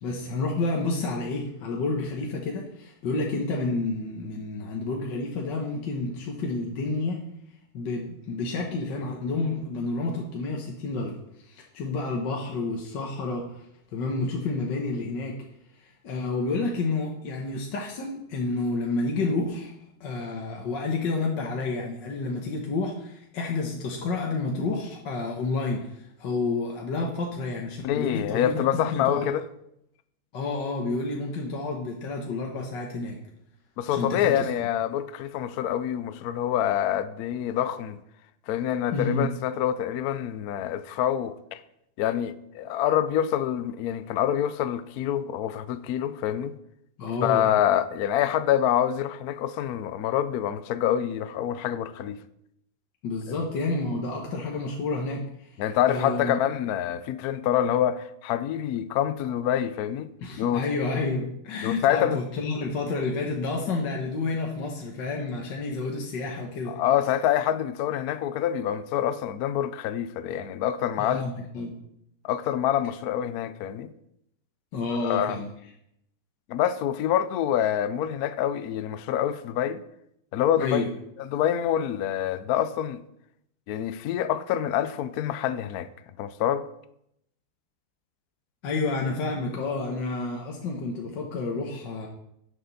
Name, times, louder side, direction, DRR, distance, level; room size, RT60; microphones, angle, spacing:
voice 1, 0.0-7.2 7.7-13.6 13.9-15.4 15.8-19.7 20.0-29.3 30.3-33.2 33.9-34.3 38.9-39.3 47.0-47.5 53.0-56.3 60.2-66.8 71.0-71.8 74.7-75.5 80.6-80.9 88.6-92.1, left 3 dB, 60° left, 1.7 m, -30 dB
voice 2, 27.8-29.4 33.8-38.0 38.5-41.6 42.0-46.6 47.2-52.2 55.6-60.1 60.4-60.6 61.6-62.2 66.7-71.2 72.2-73.9 74.9-75.4 76.5-79.8 80.3-80.8 81.2-83.0 83.7-85.9 86.2-86.7, left 10 dB, 80° left, 0.8 m, -26 dB
12.5 x 7.7 x 4.0 m
omnidirectional pair, 2.3 m